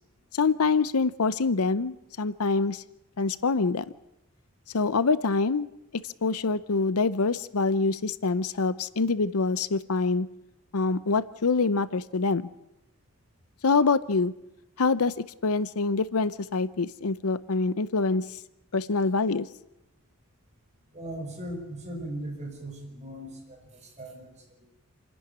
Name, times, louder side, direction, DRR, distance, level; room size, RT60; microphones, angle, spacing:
voice 1, 0.3-2.8 3.2-3.8 4.7-5.7 6.0-10.3 10.7-12.5 13.6-14.3 14.8-15.1 15.4-18.4 18.7-19.5, left 4 dB, 80° left, 16 dB, 0.7 m, -25 dB
voice 2, 20.9-24.6, right 1 dB, 30° right, 1 dB, 5.4 m, -39 dB
27.5 x 11.0 x 9.8 m, 0.89 s
head